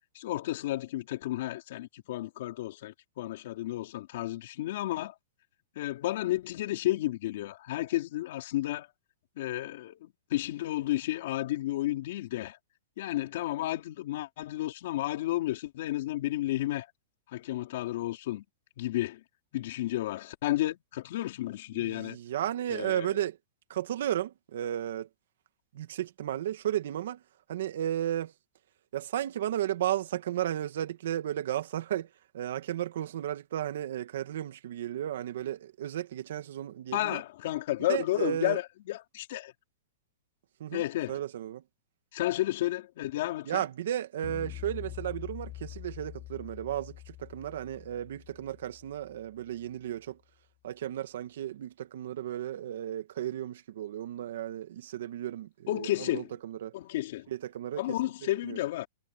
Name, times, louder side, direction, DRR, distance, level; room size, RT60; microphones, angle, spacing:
voice 1, 0.1-5.2 5.8-8.9 9.4-12.6 13.0-16.9 17.3-18.4 18.8-19.2 19.5-22.2 22.7-23.1 36.9-39.5 40.7-41.2 42.1-43.6 55.7-56.3 56.7-57.3 57.8-58.9, left 15 dB, 50° left, 3.8 m, -32 dB
voice 2, 21.7-23.4 23.7-25.1 25.7-27.2 27.5-28.3 28.9-37.2 37.9-38.6 40.6-40.8 41.1-41.6 43.5-50.2 50.6-56.7 57.3-58.0 58.4-58.6, right 11 dB, 60° right, 2.0 m, -34 dB
sound 1, 44.2-49.6, left 16 dB, 25° left, 6.1 m, -45 dB
supercardioid pair, 175°, 0 cm